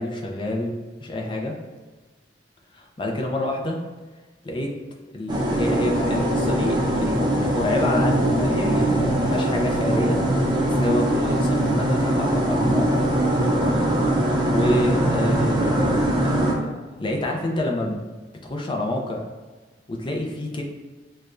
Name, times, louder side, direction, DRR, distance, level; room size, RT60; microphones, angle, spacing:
voice 1, 0.0-1.5 2.7-3.8 4.4-4.7 5.1-13.1 13.5-13.9 14.5-16.3 16.6-16.7 17.0-18.1 18.4-19.2 19.9-20.6, left 1 dB, 25° left, 1 dB, 0.4 m, -27 dB
sound 1, 5.3-16.5, right 1 dB, 25° right, 0.6 m, -21 dB
6.4 x 2.2 x 2.5 m, 1.3 s
head